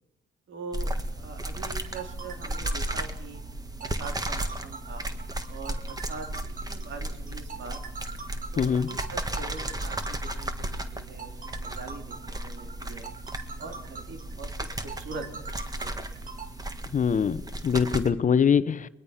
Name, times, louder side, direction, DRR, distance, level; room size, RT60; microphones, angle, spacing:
voice 1, 0.5-3.4 3.8-5.1 5.5-6.3 6.6-7.8 8.5-13.1 13.6-15.3 15.8-16.3, right 4 dB, 75° right, 3.2 m, -43 dB
sound 1, 0.7-18.1, right 1 dB, 20° right, 1.7 m, -35 dB
sound 2, 1.7-16.5, right 5 dB, 40° right, 2.5 m, -43 dB
voice 2, 8.6-8.9 16.9-18.9, left 7 dB, 40° left, 0.8 m, -23 dB
23.0 x 20.5 x 5.7 m
cardioid pair, 90°, 20 cm